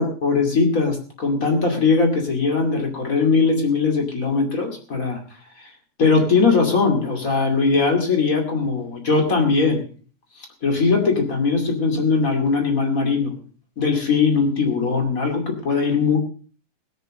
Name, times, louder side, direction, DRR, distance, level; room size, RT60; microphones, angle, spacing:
voice 1, 0.0-5.7 6.0-9.8 10.3-13.3 13.7-16.2, left 4 dB, 40° left, 3 dB, 1.2 m, -20 dB
19.5 x 6.9 x 6.5 m, 0.41 s
omnidirectional pair, 5.6 m